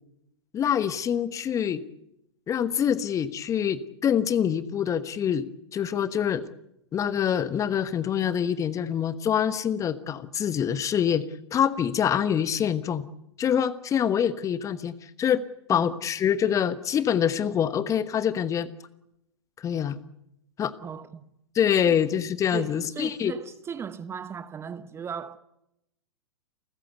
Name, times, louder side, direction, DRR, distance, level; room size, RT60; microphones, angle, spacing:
voice 1, 0.5-1.8 2.5-6.5 6.9-11.3 11.5-13.0 13.4-15.4 15.7-18.7 19.6-20.0 20.6-20.7 21.5-23.3, left 8 dB, 20° left, 1.1 m, -25 dB
voice 2, 20.8-21.3 21.8-22.0 22.5-25.4, right 7 dB, 15° right, 1.0 m, -37 dB
29.5 x 14.0 x 8.1 m
figure-of-eight pair, 100°, 14 cm